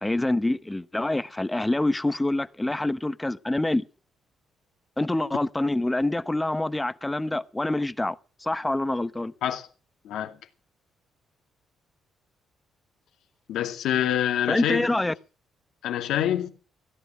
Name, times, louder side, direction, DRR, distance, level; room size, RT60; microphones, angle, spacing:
voice 1, 0.0-3.8 5.0-8.2 8.4-9.3 14.5-15.1, left 2 dB, 10° left, 0.9 m, -26 dB
voice 2, 10.0-10.4 13.5-14.9 15.8-16.5, left 11 dB, 85° left, 2.4 m, -26 dB
16.5 x 11.5 x 5.0 m
cardioid pair, 90°, 0 cm